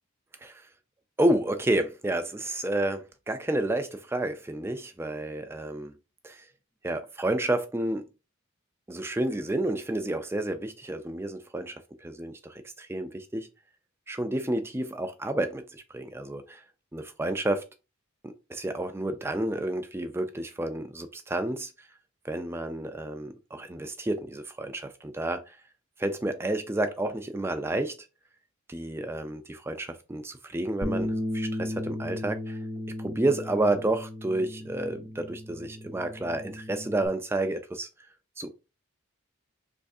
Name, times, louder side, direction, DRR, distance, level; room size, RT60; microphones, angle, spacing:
voice 1, 1.2-5.9 6.2-6.5 6.8-8.1 8.9-13.5 14.1-16.6 16.9-17.7 18.2-21.7 22.2-25.6 26.0-28.0 28.7-32.6 33.0-37.9 38.4-38.5, right 1 dB, 10° right, 0.3 m, -30 dB
Bass guitar, 30.8-37.1, left 1 dB, 30° right, 0.7 m, -35 dB
3.5 x 3.1 x 2.6 m
head